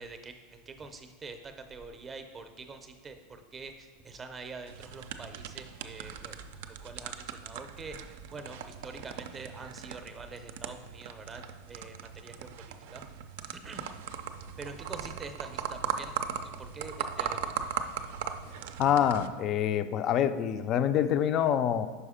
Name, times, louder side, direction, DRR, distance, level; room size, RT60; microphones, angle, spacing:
voice 1, 0.0-13.0 13.5-13.9 14.6-16.1 16.4-17.6, right 3 dB, 20° right, 7 dB, 0.6 m, -45 dB
sound 1, 4.7-19.3, right 8 dB, 70° right, 0.4 m, -39 dB
voice 2, 18.8-21.9, left 9 dB, 40° left, 11 dB, 0.3 m, -26 dB
5.6 x 4.8 x 4.9 m, 1.5 s
supercardioid pair, 140°, 0 cm